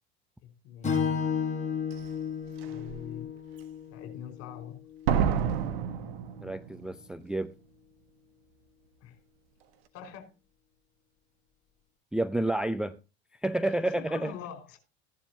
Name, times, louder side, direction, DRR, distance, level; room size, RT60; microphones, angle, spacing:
voice 1, 0.6-1.4 2.6-3.3 3.9-4.8 9.0-9.2 9.9-10.3 13.8-14.8, left 9 dB, 45° left, 5.1 m, -44 dB
Strum, 0.8-5.2, left 6 dB, 20° left, 6.7 m, -33 dB
Slam, 1.9-2.0 2.6-3.0 5.1-7.0 7.2-7.3, right 8 dB, 65° right, 1.5 m, -29 dB
voice 2, 6.4-7.5 12.1-13.0 13.4-14.3, right 1 dB, ahead, 0.6 m, -30 dB
15.5 x 11.0 x 2.8 m
figure-of-eight pair, 75°, 33 cm